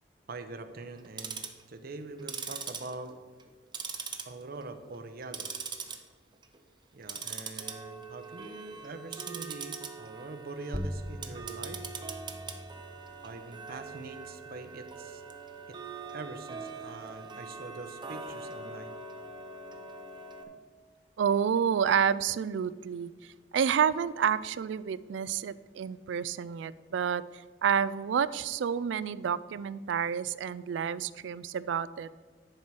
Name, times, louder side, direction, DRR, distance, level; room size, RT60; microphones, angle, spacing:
voice 1, 0.3-1.4 1.7-3.1 4.2-5.9 6.9-11.8 13.2-15.2 15.7-15.8 16.1-18.9, right 3 dB, 55° right, 9 dB, 0.7 m, -43 dB
Tick-tock, 1.0-1.6 2.2-3.5 3.7-4.6 4.9-6.0 6.3-6.6 7.0-20.4, right 5 dB, 25° right, 0.7 m, -42 dB
sound 1, 10.7-15.8, equal, 5° left, 0.4 m, -43 dB
voice 2, 21.2-32.1, right 7 dB, 80° right, 17 dB, 0.3 m, -29 dB
10.5 x 4.5 x 6.1 m, 1.5 s
head